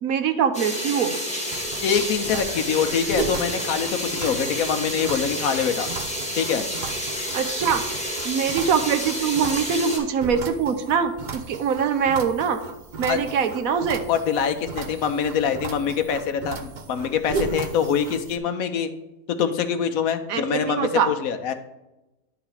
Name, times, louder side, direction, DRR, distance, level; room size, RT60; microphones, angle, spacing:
voice 1, 0.0-1.1 7.3-7.8 8.2-12.6 13.0-14.1 20.3-21.1, right 7 dB, 70° right, 9 dB, 1.1 m, -23 dB
sound 1, 0.5-10.0, equal, 5° left, 1.7 m, -30 dB
sound 2, 1.5-18.4, right 4 dB, 50° right, 0.6 m, -35 dB
voice 2, 1.8-5.9 6.4-6.7 13.1-13.2 14.1-18.9 19.4-21.5, left 7 dB, 75° left, 7 dB, 1.1 m, -24 dB
10.0 x 3.9 x 4.8 m, 0.99 s
omnidirectional pair, 1.6 m